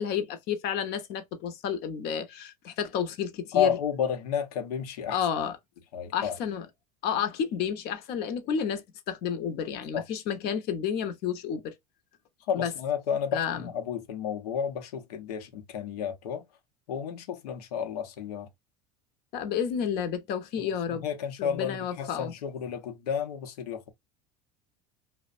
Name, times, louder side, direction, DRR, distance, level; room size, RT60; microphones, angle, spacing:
voice 1, 0.0-3.8 5.1-5.5 6.1-6.7 7.0-11.7 12.5-12.7 13.3-13.7 19.3-21.0 21.4-22.3, left 8 dB, 55° left, 0.8 m, -31 dB
voice 2, 3.5-5.2 5.9-6.3 9.9-10.0 12.5-16.5 16.9-18.5 20.6-23.9, left 8 dB, 85° left, 0.8 m, -31 dB
2.5 x 2.1 x 2.4 m
supercardioid pair, 95°, 20 cm